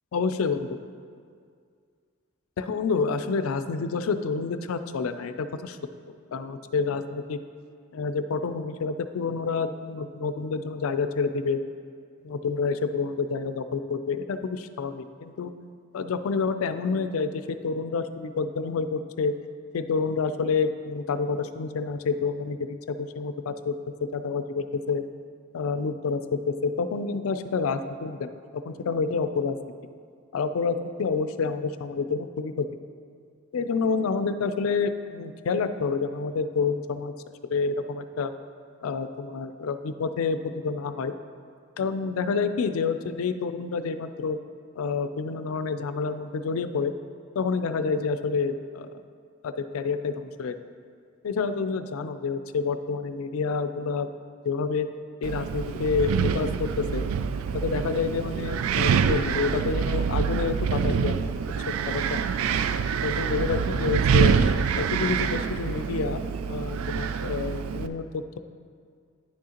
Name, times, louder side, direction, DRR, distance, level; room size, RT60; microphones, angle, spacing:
voice 1, 0.1-0.7 2.6-5.8 6.3-7.4 7.9-11.6 12.2-15.5 15.9-19.3 19.7-23.7 24.0-25.0 25.5-29.6 30.3-32.7 33.5-37.1 37.5-38.3 38.8-41.1 41.8-44.4 44.7-46.9 47.4-49.0 49.4-50.6 51.2-54.1 54.4-54.9 55.2-57.0 57.5-61.2 61.9-62.3 63.0-64.3 64.8-68.4, left 5 dB, 85° left, 10 dB, 0.4 m, -28 dB
Wind, 55.2-67.9, right 6 dB, 85° right, 0.3 m, -26 dB
9.8 x 6.2 x 2.9 m, 2.1 s
head